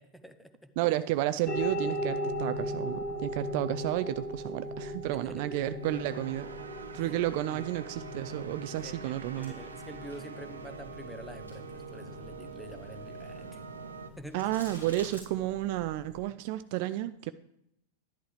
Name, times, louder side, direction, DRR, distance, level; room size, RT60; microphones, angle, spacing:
voice 1, 0.0-0.7 5.1-5.5 7.0-7.1 7.5-7.7 8.7-13.5 14.2-14.4, equal, ahead, 9 dB, 0.8 m, -47 dB
voice 2, 0.8-6.5 6.9-9.5 14.3-17.3, right 14 dB, 50° right, 13 dB, 0.3 m, -32 dB
sound 1, 1.4-16.2, equal, 20° left, 2.0 m, -39 dB
sound 2, 5.8-14.1, right 5 dB, 75° right, 0.9 m, -45 dB
sound 3, 9.4-15.2, right 1 dB, 90° left, 4.4 m, -53 dB
11.0 x 11.0 x 3.4 m, 0.79 s
figure-of-eight pair, 90°, 0 cm